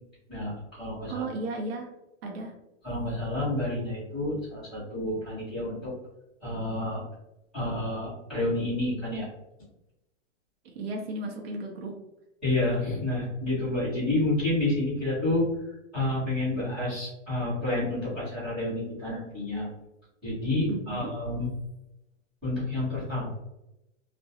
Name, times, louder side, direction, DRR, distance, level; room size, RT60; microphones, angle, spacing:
voice 1, 0.3-1.2 2.8-5.9 6.4-7.0 7.5-9.3 12.4-15.5 15.9-19.7 20.2-21.5 22.4-23.4, left 1 dB, ahead, -19 dB, 0.5 m, -29 dB
voice 2, 1.1-1.9 2.2-2.5 10.6-12.0 20.7-21.1, right 2 dB, 55° right, 0 dB, 0.5 m, -35 dB
2.3 x 2.0 x 2.6 m, 0.91 s
hypercardioid pair, 175°, 37 cm